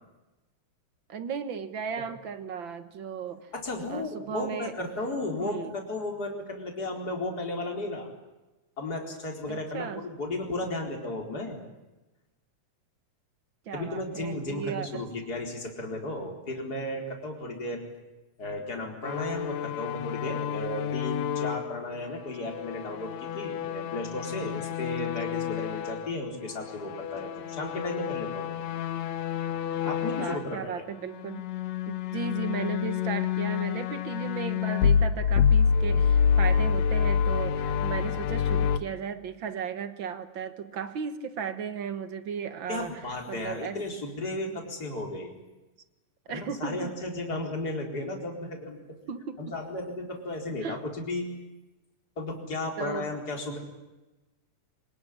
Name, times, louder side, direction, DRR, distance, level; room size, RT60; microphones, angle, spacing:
voice 1, 1.1-3.5 3.9-4.7 5.4-5.7 9.5-10.0 13.6-15.1 30.2-31.4 31.9-43.8 44.5-44.7 46.3-46.9 49.1-49.4 50.6-50.8 52.8-53.1, right 7 dB, 55° right, 11 dB, 1.4 m, -35 dB
voice 2, 3.5-8.1 8.8-11.6 13.7-17.8 18.4-28.5 29.8-30.8 42.7-45.3 46.3-49.0 49.4-51.2 52.2-53.6, left 2 dB, 30° left, 2 dB, 4.7 m, -34 dB
sound 1, 19.0-26.1 26.4-30.6 31.1-38.8, left 7 dB, 65° left, 2.2 m, -28 dB
26.5 x 19.5 x 10.0 m, 1.1 s
omnidirectional pair, 3.6 m